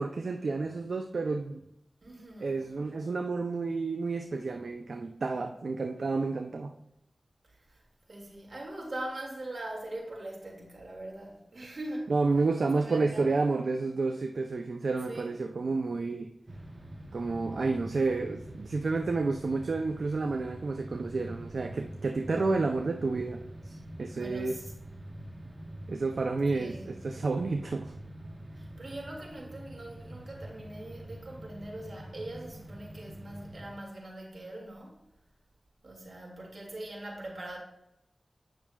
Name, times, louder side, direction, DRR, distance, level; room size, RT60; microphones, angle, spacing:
voice 1, 0.0-1.6 2.4-6.7 12.1-16.3 17.1-24.6 25.9-27.9, right 3 dB, 80° right, 0.4 m, -30 dB
voice 2, 2.0-2.7 7.5-7.8 8.1-12.1 12.8-13.4 15.1-15.3 24.1-24.6 25.2-25.3 26.5-27.0 28.5-35.0 35.8-37.6, right 1 dB, 60° right, 2.0 m, -42 dB
sound 1, 16.5-33.8, right 1 dB, 40° right, 1.1 m, -45 dB
9.0 x 6.0 x 2.3 m
cardioid pair, 40°, 0 cm